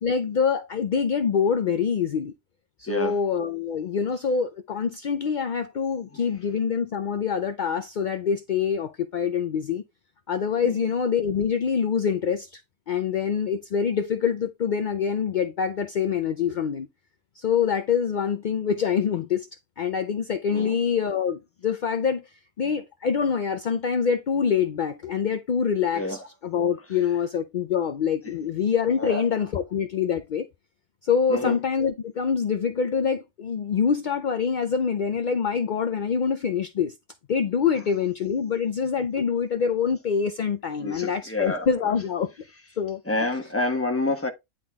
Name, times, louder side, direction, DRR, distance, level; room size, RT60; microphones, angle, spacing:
voice 1, 0.0-2.3 2.8-9.8 10.3-12.6 12.9-16.9 17.4-19.5 19.8-22.3 22.6-30.5 31.0-36.9 37.3-42.3 42.8-43.0, left 6 dB, 55° left, 0.5 m, -25 dB
voice 2, 2.9-3.2 6.1-6.2 10.6-10.9 20.5-20.8 25.9-26.3 28.3-28.4 29.0-29.2 31.3-31.6 40.8-41.9 43.1-44.3, left 2 dB, 10° left, 1.0 m, -28 dB
9.9 x 3.8 x 3.5 m
omnidirectional pair, 1.4 m